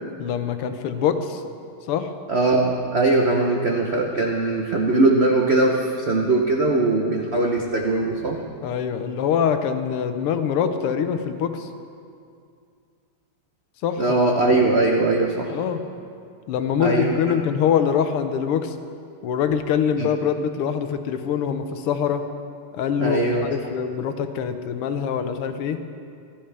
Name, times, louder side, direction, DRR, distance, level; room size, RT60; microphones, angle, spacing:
voice 1, 0.2-1.4 1.9-2.1 3.5-3.6 8.6-11.7 13.8-14.2 15.5-15.8 16.5-18.8 19.2-22.3 22.7-25.8, left 8 dB, 85° left, 9 dB, 1.7 m, -24 dB
voice 2, 2.3-8.4 14.0-15.6 16.8-17.2 20.0-20.1 23.0-23.5, right 2 dB, 85° right, 0 dB, 0.5 m, -20 dB
15.5 x 13.5 x 3.4 m, 2.3 s
omnidirectional pair, 2.4 m